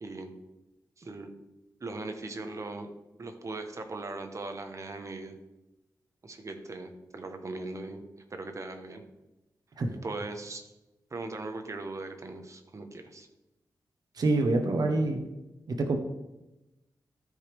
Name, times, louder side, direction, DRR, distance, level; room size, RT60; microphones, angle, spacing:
voice 1, 1.0-1.3 1.8-2.9 3.2-5.4 6.2-8.0 8.3-9.0 10.0-10.7 11.1-13.3, right 2 dB, 45° right, 6 dB, 1.1 m, -39 dB
voice 2, 14.1-15.3 15.7-16.0, right 2 dB, 70° right, 5 dB, 1.0 m, -26 dB
13.0 x 5.1 x 3.4 m, 0.99 s
cardioid pair, 75°, 7 cm